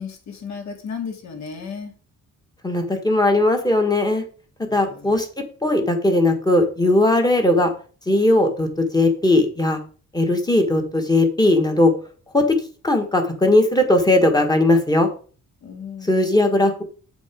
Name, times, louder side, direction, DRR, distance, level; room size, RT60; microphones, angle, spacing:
voice 1, 0.0-1.9 4.7-5.2 15.6-16.3, left 6 dB, 60° left, 4 dB, 2.1 m, -34 dB
voice 2, 2.6-4.2 4.7-7.7 8.1-9.8 10.1-11.9 12.3-12.6 12.8-15.1 16.0-16.8, left 2 dB, 10° left, 4 dB, 1.4 m, -18 dB
8.5 x 5.3 x 5.0 m, 0.40 s
cardioid pair, 170°, 32 cm